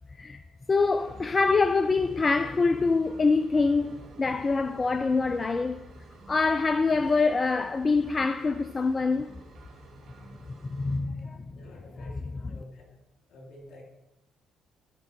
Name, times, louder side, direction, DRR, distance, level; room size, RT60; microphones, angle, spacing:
voice 1, 0.7-5.8 6.3-9.3 10.5-11.4, left 4 dB, 35° left, 0.5 m, -25 dB
sound 1, 0.8-11.0, right 3 dB, 60° right, 2.7 m, -51 dB
voice 2, 11.6-13.0 13.3-13.8, left 1 dB, 60° left, 3.1 m, -49 dB
13.0 x 6.1 x 4.5 m
hypercardioid pair, 50°, 0 cm